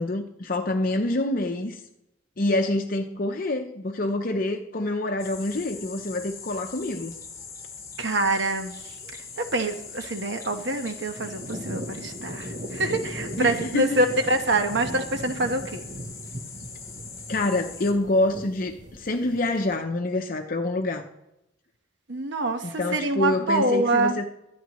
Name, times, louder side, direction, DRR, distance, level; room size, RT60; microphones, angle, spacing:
voice 1, 0.0-1.8 2.4-7.1 13.4-14.0 17.3-21.1 22.6-24.3, left 2 dB, 45° left, 0.7 m, -26 dB
sound 1, 5.2-17.9, left 5 dB, 15° left, 1.4 m, -42 dB
voice 2, 8.0-15.9 22.1-24.2, right 2 dB, 60° right, 1.2 m, -26 dB
sound 2, 9.0-9.4 10.1-19.8, equal, 40° right, 1.0 m, -39 dB
23.0 x 9.4 x 3.1 m
head